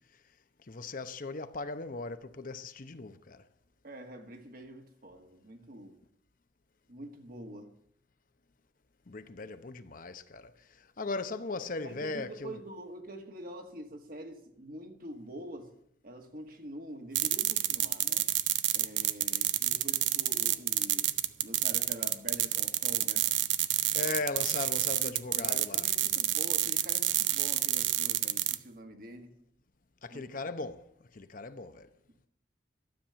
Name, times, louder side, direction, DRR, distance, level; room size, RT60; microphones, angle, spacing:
voice 1, 0.6-3.5 9.1-12.6 19.3-19.5 23.9-25.9 30.0-31.9, left 3 dB, 50° left, 0.8 m, -38 dB
voice 2, 3.8-6.0 6.9-7.8 11.8-15.8 16.0-18.3 18.7-21.1 21.4-23.3 25.0-29.3 30.1-30.2, right 1 dB, 50° right, 1.8 m, -46 dB
sound 1, 17.1-28.6, right 14 dB, 85° right, 0.7 m, -28 dB
13.0 x 7.4 x 9.7 m
head